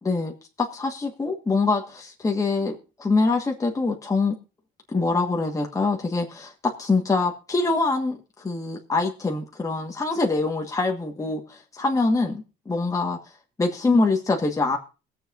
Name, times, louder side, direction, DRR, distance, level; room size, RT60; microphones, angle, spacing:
voice 1, 0.0-4.4 4.9-13.2 13.6-14.8, left 3 dB, 20° left, 1 dB, 1.4 m, -24 dB
22.0 x 7.4 x 2.5 m, 0.32 s
cardioid pair, 110°, 17 cm